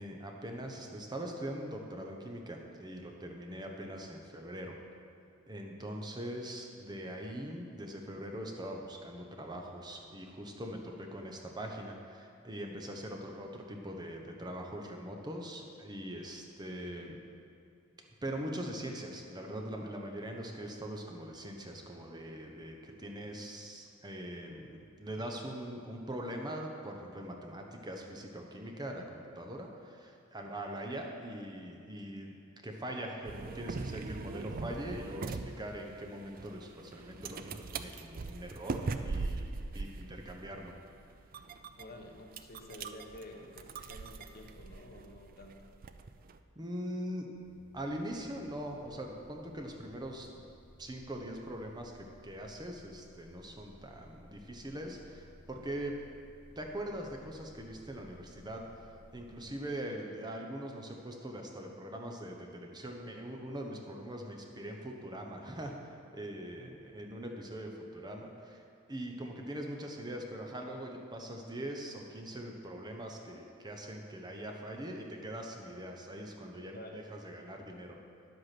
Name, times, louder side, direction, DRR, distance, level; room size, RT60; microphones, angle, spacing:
voice 1, 0.0-4.8 5.5-17.2 18.2-32.3 32.6-40.7 46.6-47.3 47.7-50.3 50.8-56.0 56.6-58.6 59.1-65.7 66.1-68.6 68.9-78.0, right 1 dB, 20° right, 2 dB, 0.9 m, -42 dB
sound 1, 33.2-46.4, right 4 dB, 45° right, 0.4 m, -41 dB
voice 2, 41.8-45.5 66.6-66.7 76.7-76.9, left 1 dB, 50° left, 1 dB, 1.2 m, -50 dB
sound 2, 47.3-59.4, equal, 10° left, 1.9 m, -58 dB
10.5 x 8.1 x 6.0 m, 2.5 s
head